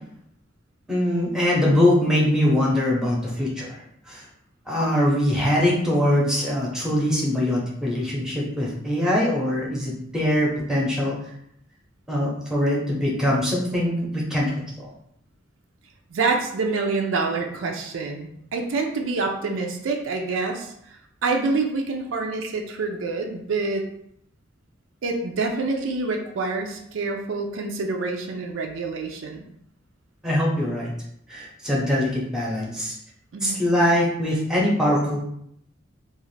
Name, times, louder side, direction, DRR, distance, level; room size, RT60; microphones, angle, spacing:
voice 1, 0.9-3.8 4.1-4.2 4.7-11.2 12.1-14.5 14.8-14.9 30.2-30.9 31.3-33.0 33.4-35.2, left 1 dB, 5° right, -4 dB, 0.7 m, -22 dB
voice 2, 16.1-23.8 25.0-29.4 33.3-33.6, right 3 dB, 75° right, 3 dB, 0.4 m, -27 dB
2.4 x 2.4 x 3.1 m, 0.72 s
head